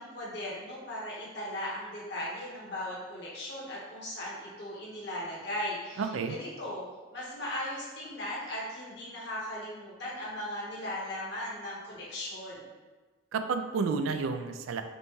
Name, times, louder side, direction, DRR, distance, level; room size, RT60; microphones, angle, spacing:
voice 1, 0.0-6.8 7.1-12.7, left 1 dB, 55° left, -5 dB, 1.2 m, -38 dB
voice 2, 6.0-6.4 13.3-14.8, right 5 dB, 85° right, 8 dB, 0.3 m, -30 dB
5.2 x 2.2 x 3.1 m, 1.3 s
head